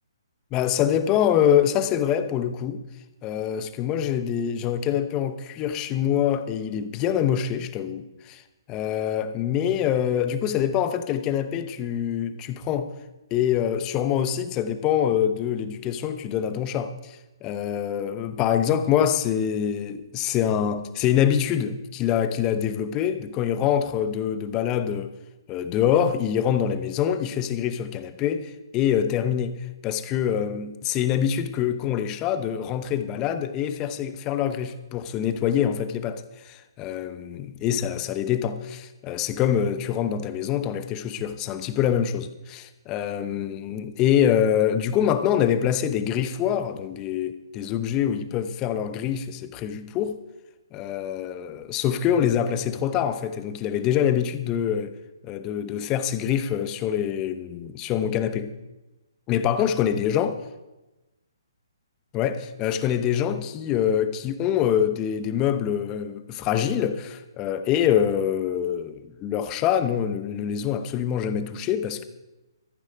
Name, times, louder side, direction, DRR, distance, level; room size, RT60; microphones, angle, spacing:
voice 1, 0.5-2.8 3.2-8.4 8.7-12.9 13.3-25.1 25.5-50.2 50.7-55.0 55.2-58.5 59.3-60.3 62.1-72.0, left 9 dB, 25° left, 0.9 m, -25 dB
14.0 x 11.5 x 5.1 m
hypercardioid pair, 145°, 2 cm